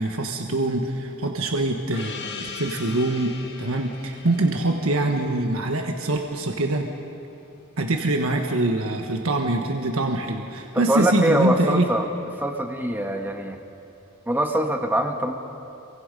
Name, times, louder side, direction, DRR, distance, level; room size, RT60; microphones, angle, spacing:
voice 1, 0.0-6.9 7.8-11.8, right 2 dB, 80° right, 3 dB, 1.4 m, -24 dB
Gong, 1.9-7.0, left 5 dB, 55° left, 2.1 m, -40 dB
voice 2, 10.7-12.1 12.4-13.6 14.3-15.3, right 1 dB, 10° right, 3 dB, 1.5 m, -23 dB
27.5 x 23.5 x 5.4 m, 2.8 s
head